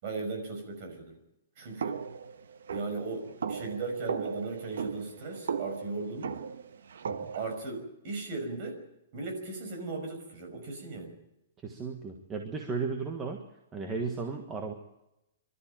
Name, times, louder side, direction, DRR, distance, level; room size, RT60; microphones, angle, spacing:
voice 1, 0.0-1.2 1.6-2.0 2.7-6.4 7.4-8.8 9.1-11.1, right 3 dB, 35° right, 3 dB, 5.7 m, -37 dB
sound 1, 1.8-7.6, right 6 dB, 85° right, 1.3 m, -37 dB
voice 2, 11.6-13.4 13.7-14.7, right 4 dB, 15° right, 2 dB, 1.5 m, -35 dB
24.5 x 13.0 x 9.0 m, 0.89 s
hypercardioid pair, 175°, 0 cm